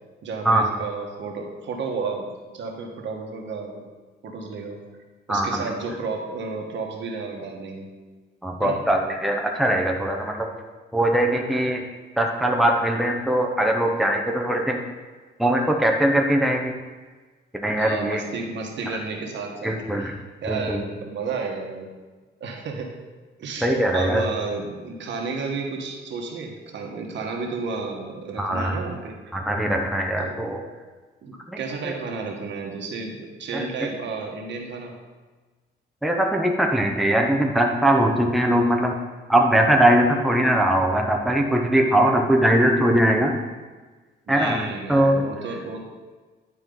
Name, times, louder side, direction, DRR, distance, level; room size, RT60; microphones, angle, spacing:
voice 1, 0.2-3.8 4.2-4.8 5.3-7.9 8.6-8.8 17.8-20.1 20.4-21.9 22.4-22.9 23.4-29.1 30.2-30.3 31.2-34.9 44.3-45.8, right 4 dB, 70° right, 1 dB, 1.4 m, -32 dB
voice 2, 5.3-5.7 8.4-10.5 10.9-11.8 12.2-14.8 15.4-16.7 17.5-18.2 19.6-20.1 20.5-20.8 23.6-24.2 28.4-28.7 29.3-30.6 31.5-31.6 31.8-31.9 33.5-33.6 36.0-38.9 39.3-43.4 44.3-45.3, right 1 dB, ahead, 1 dB, 0.9 m, -21 dB
10.5 x 4.5 x 3.9 m, 1.3 s
cardioid pair, 90°, 20 cm